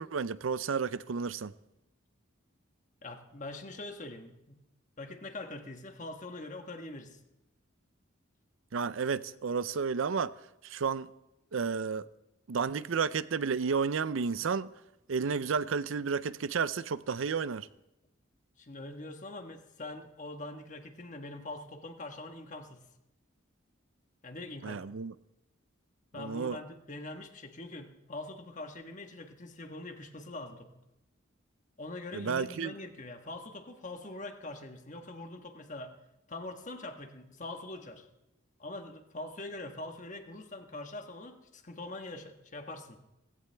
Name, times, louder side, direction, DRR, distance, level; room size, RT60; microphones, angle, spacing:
voice 1, 0.0-1.5 8.7-10.3 10.6-11.1 11.5-12.0 12.5-14.7 15.1-17.7 24.6-25.1 26.2-26.6 32.1-32.7, right 5 dB, 75° right, 0.5 m, -31 dB
voice 2, 3.0-4.6 5.0-7.2 18.6-22.8 24.2-24.8 26.1-30.7 31.8-35.9 36.3-38.1 38.6-43.0, left 2 dB, 40° left, 1.3 m, -43 dB
17.5 x 16.0 x 3.4 m
head